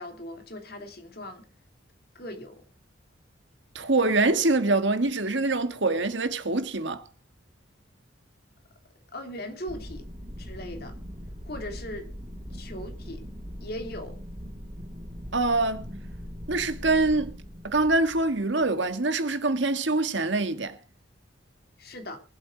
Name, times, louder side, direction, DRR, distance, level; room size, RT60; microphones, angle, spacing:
voice 1, 0.0-1.4 2.1-2.6 9.1-10.0 10.4-10.9 11.4-12.1 12.5-13.2 13.6-14.2 21.8-22.2, left 1 dB, 50° left, 3.0 m, -39 dB
voice 2, 3.7-7.0 15.3-15.9 16.5-17.3 17.6-20.8, right 2 dB, 65° right, 1.5 m, -24 dB
sound 1, 9.7-18.9, equal, 30° right, 1.9 m, -41 dB
23.5 x 8.1 x 3.8 m
head